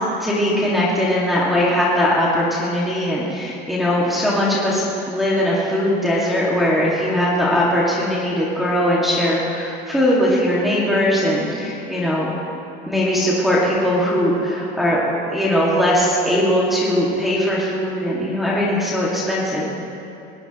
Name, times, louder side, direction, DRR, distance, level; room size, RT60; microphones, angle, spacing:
voice 1, 0.2-12.3 12.9-15.0 15.3-19.7, equal, ahead, -8 dB, 1.9 m, -20 dB
21.0 x 18.5 x 3.0 m, 2.7 s
cardioid pair, 175°, 20 cm